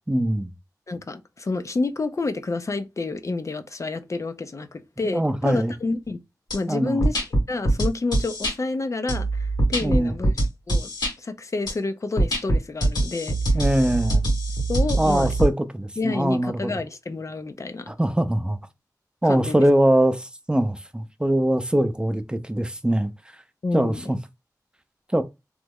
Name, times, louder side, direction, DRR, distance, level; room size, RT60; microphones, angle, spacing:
voice 1, 0.1-0.5 5.1-5.7 6.7-7.0 9.8-10.1 13.5-14.2 15.0-16.7 17.9-18.6 19.2-23.1 23.7-24.2 25.1-25.2, right 1 dB, 15° right, 0.5 m, -22 dB
voice 2, 0.9-6.2 6.5-7.2 7.5-10.3 10.7-10.9 11.2-13.6 14.7-15.3 16.0-17.9 19.2-19.6 23.6-24.1, left 3 dB, 50° left, 0.4 m, -29 dB
sound 1, 6.5-6.6 7.0-8.5 9.1-11.1 11.7-11.8 12.2-15.5, right 1 dB, 85° left, 1.6 m, -23 dB
3.1 x 2.0 x 3.5 m
wide cardioid pair, 65°, 7 cm